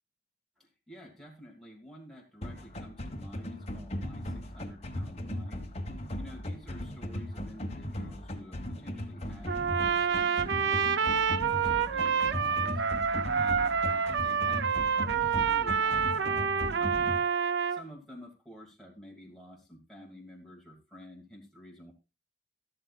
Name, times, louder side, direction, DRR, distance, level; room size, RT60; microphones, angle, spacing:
voice 1, 0.6-12.8 13.3-17.2 17.5-21.9, equal, ahead, -2 dB, 2.1 m, -50 dB
sound 1, 2.4-17.2, left 1 dB, 35° left, 1.4 m, -38 dB
Trumpet, 9.5-17.8, right 6 dB, 65° right, 0.5 m, -28 dB
13.0 x 12.5 x 2.4 m, 0.29 s
head